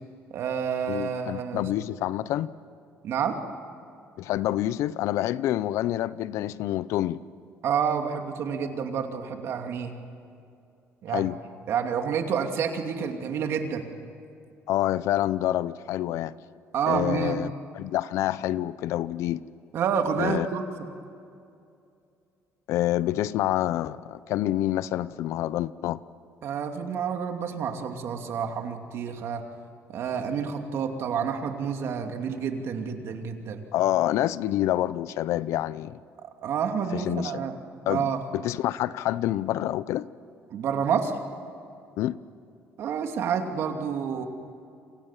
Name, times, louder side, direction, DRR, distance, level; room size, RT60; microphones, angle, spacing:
voice 1, 0.3-1.6 3.0-3.4 7.6-9.9 11.0-11.3 11.7-13.9 16.7-17.4 19.7-20.9 26.4-29.4 29.9-33.6 36.4-37.6 37.9-38.2 40.5-41.2 42.8-44.3, right 7 dB, 65° right, 4 dB, 2.8 m, -29 dB
voice 2, 0.9-2.5 4.2-7.2 11.1-11.4 14.7-16.3 16.9-19.4 20.2-20.5 22.7-26.0 33.7-36.0 36.9-37.3 37.9-40.1 42.0-42.2, left 13 dB, 80° left, 17 dB, 0.7 m, -27 dB
29.5 x 26.5 x 7.5 m, 2.5 s
cardioid pair, 120°, 5 cm